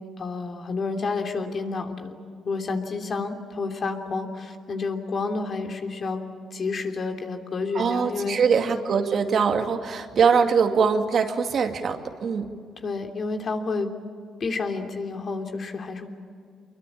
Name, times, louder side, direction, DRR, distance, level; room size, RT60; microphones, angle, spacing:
voice 1, 0.2-2.1 2.4-6.2 6.5-8.4 12.8-13.9 14.4-16.1, left 4 dB, 50° left, 4 dB, 3.1 m, -30 dB
voice 2, 7.7-12.5, right 6 dB, 55° right, 6 dB, 2.2 m, -22 dB
25.5 x 22.5 x 8.7 m, 2.3 s
cardioid pair, 90°, 0 cm